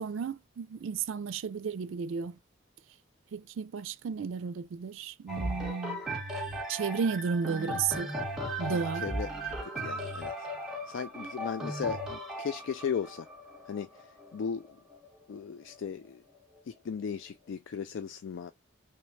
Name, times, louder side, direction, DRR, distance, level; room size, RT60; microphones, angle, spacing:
voice 1, 0.0-2.4 3.3-6.0 6.7-8.1 8.6-9.0, right 6 dB, 70° right, 0.4 m, -33 dB
sound 1, 5.3-15.1 15.7-15.8, right 1 dB, 5° right, 1.3 m, -37 dB
voice 2, 8.7-10.5 10.8-13.3 13.7-14.8 15.3-16.2 16.7-18.5, left 6 dB, 65° left, 0.3 m, -37 dB
3.2 x 3.2 x 2.8 m
head